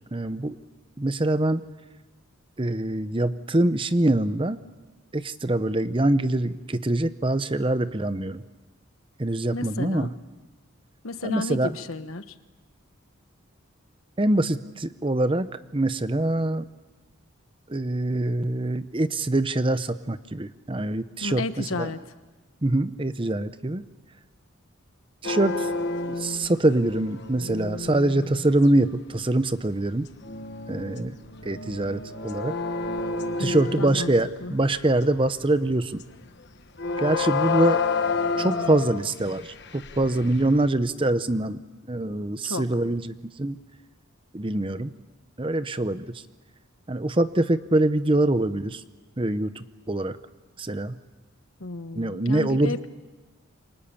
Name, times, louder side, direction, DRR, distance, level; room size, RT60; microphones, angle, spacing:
voice 1, 0.1-0.6 1.0-1.7 2.6-4.6 5.1-8.4 9.2-10.1 11.2-11.7 14.2-16.7 17.7-21.9 22.6-23.8 25.2-25.7 26.2-30.1 30.7-31.2 31.4-32.5 33.4-36.0 37.0-37.8 38.4-41.6 41.9-43.6 44.3-44.9 45.4-46.2 46.9-48.8 49.2-50.2 50.6-51.0 51.9-52.7, right 1 dB, 25° right, 13 dB, 0.7 m, -24 dB
voice 2, 9.5-10.1 11.0-12.3 21.2-22.0 33.4-34.1 34.4-34.5 42.4-42.6 51.6-52.9, left 2 dB, 80° left, 11 dB, 1.2 m, -32 dB
sound 1, 25.2-28.6 29.2-29.4 30.0-35.5 36.0-36.3 36.8-40.7, left 4 dB, 50° left, 1.2 m, -30 dB
28.5 x 25.0 x 7.1 m, 1.2 s
head